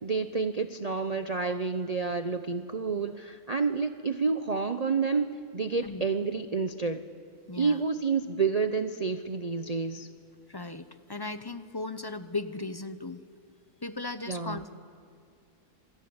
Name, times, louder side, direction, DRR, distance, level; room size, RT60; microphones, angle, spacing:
voice 1, 0.0-7.0 7.6-10.1 14.3-14.6, right 4 dB, 35° right, 9 dB, 0.8 m, -29 dB
voice 2, 7.5-7.9 10.5-13.2 13.8-14.8, left 3 dB, 20° left, 12 dB, 0.8 m, -37 dB
27.0 x 21.5 x 9.7 m, 2.2 s
omnidirectional pair, 1.5 m